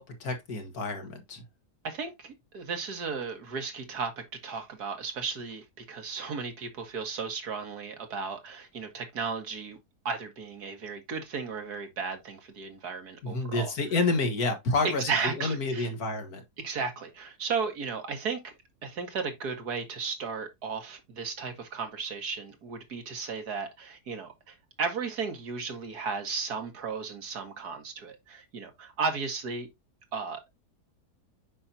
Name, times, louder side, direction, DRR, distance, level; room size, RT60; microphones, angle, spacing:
voice 1, 0.0-1.4 13.2-16.4, left 3 dB, 75° left, 2.0 m, -29 dB
voice 2, 1.8-9.8 10.1-13.7 14.8-15.9 16.6-18.5 18.8-29.7 30.1-30.4, right 5 dB, 80° right, 2.1 m, -35 dB
7.5 x 5.7 x 2.8 m
omnidirectional pair, 1.6 m